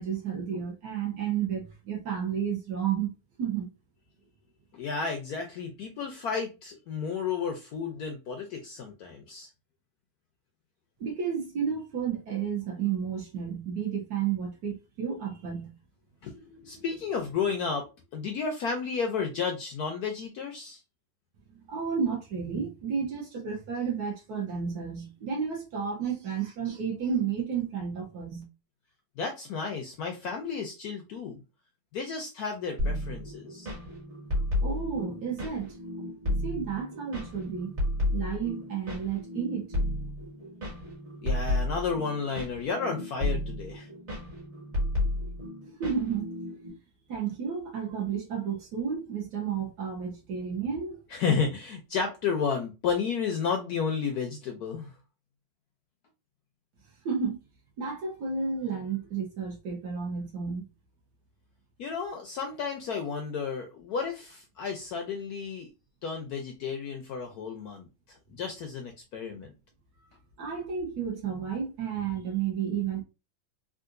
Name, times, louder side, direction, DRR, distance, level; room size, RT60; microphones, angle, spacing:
voice 1, 0.0-3.1 3.4-3.7 11.0-15.7 21.5-28.4 34.6-35.8 36.4-37.7 38.1-39.7 45.8-46.3 47.1-51.0 57.0-57.4 57.8-60.6 70.4-73.0, right 7 dB, 65° right, 1.2 m, -32 dB
voice 2, 4.7-9.5 16.2-20.8 29.2-31.4 31.9-33.7 41.2-43.9 51.1-54.9 61.8-65.7 66.0-67.9 68.3-69.5, left 5 dB, 70° left, 0.9 m, -32 dB
sound 1, 32.8-46.7, left 1 dB, 40° right, 1.7 m, -32 dB
3.7 x 2.4 x 2.5 m
omnidirectional pair, 2.1 m